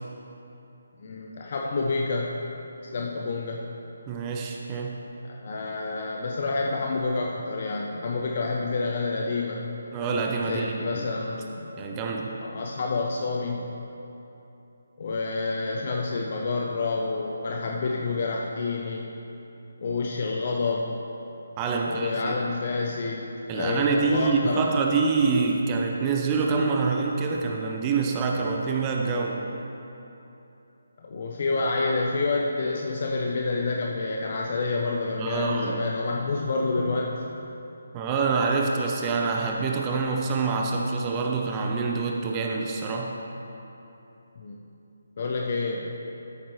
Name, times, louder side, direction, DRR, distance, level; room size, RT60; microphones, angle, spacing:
voice 1, 1.0-2.4 2.9-3.6 5.2-9.6 10.4-11.7 12.4-13.7 15.0-19.1 19.8-20.9 21.8-23.2 23.5-24.7 31.0-37.1 44.4-44.6 45.2-45.9, left 3 dB, 45° left, 0 dB, 0.7 m, -28 dB
voice 2, 4.1-5.0 9.9-11.0 11.8-12.4 21.6-22.4 23.5-29.4 35.2-35.8 37.9-43.2, right 4 dB, 20° right, 1 dB, 0.6 m, -26 dB
13.0 x 7.9 x 3.1 m, 3.0 s
figure-of-eight pair, 150°, 0 cm